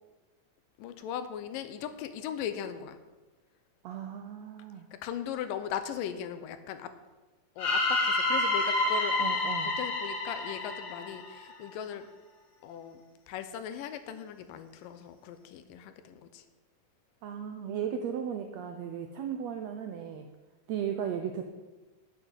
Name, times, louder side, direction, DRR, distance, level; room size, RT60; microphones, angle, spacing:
voice 1, 0.8-3.0 5.0-6.9 7.6-9.2 9.8-12.1 12.6-13.0 13.3-16.4, left 9 dB, 90° left, 10 dB, 2.4 m, -38 dB
voice 2, 3.8-4.9 9.2-9.8 17.2-20.3 20.7-21.4, right 8 dB, 80° right, 5 dB, 1.5 m, -36 dB
sound 1, 7.6-11.7, left 2 dB, 50° left, 2.1 m, -29 dB
8.9 x 6.3 x 8.1 m, 1.2 s
omnidirectional pair, 3.8 m